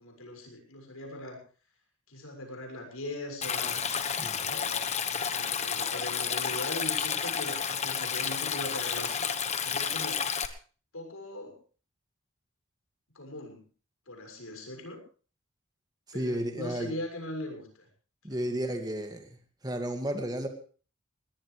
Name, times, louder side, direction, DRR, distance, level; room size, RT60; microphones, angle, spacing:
voice 1, 0.0-1.4 2.1-3.8 4.4-4.8 5.3-9.2 9.6-10.2 10.9-11.5 13.1-13.6 14.1-15.0 16.1-17.8 18.3-18.4, left 1 dB, 90° left, 4 dB, 6.6 m, -40 dB
Stream, 3.4-10.5, left 7 dB, 35° left, 1.2 m, -31 dB
voice 2, 4.2-4.6 16.1-16.9 18.2-19.3 19.6-20.5, right 1 dB, 20° right, 5 dB, 2.3 m, -33 dB
21.5 x 18.5 x 3.4 m, 0.39 s
head